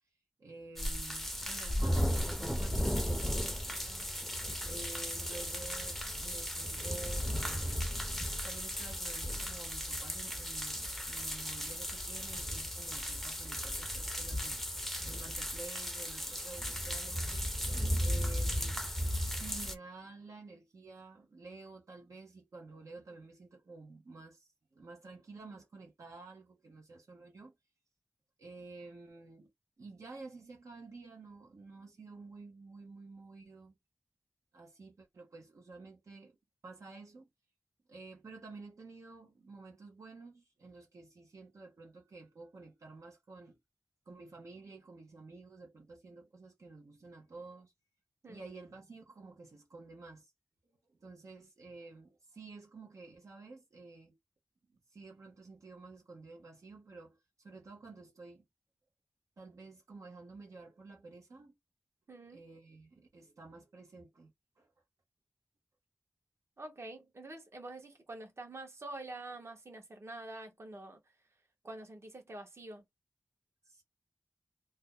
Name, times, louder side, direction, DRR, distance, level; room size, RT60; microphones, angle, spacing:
voice 1, 0.4-3.6 3.8-4.1 4.6-7.9 8.4-17.3 18.0-27.5 28.4-29.5 29.8-33.8 34.5-36.4 36.6-37.3 37.9-43.6 44.1-47.7 48.3-50.3 50.9-54.2 54.9-58.5 59.4-61.5 62.3-64.7 73.6-73.8, right 3 dB, 75° right, 0.9 m, -51 dB
sound 1, 0.8-19.7, equal, 5° left, 0.6 m, -35 dB
voice 2, 62.1-62.4 66.6-71.0 71.6-72.8, right 2 dB, 50° right, 1.1 m, -46 dB
2.7 x 2.2 x 3.6 m
wide cardioid pair, 80°, 6 cm